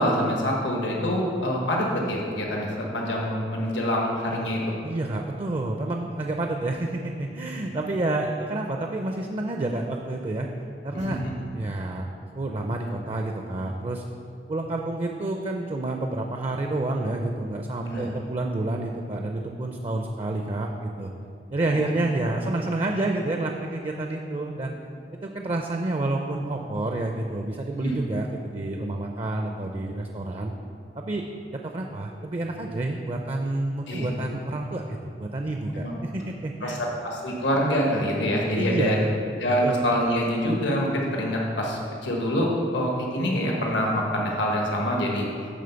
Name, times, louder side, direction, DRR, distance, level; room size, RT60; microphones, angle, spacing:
voice 1, 0.0-4.6 7.6-7.7 10.9-11.3 17.9-18.1 21.6-21.8 27.8-28.0 33.9-34.1 35.7-36.0 36.6-39.0 39.4-45.3, equal, 90° left, -2 dB, 1.2 m, -26 dB
voice 2, 4.8-10.5 10.8-11.2 11.5-14.0 14.5-21.1 21.5-24.7 25.2-30.5 31.0-31.2 31.5-36.8 38.6-39.1 39.6-39.8, right 2 dB, 30° right, 3 dB, 0.4 m, -29 dB
10.0 x 3.8 x 6.8 m, 2.6 s
head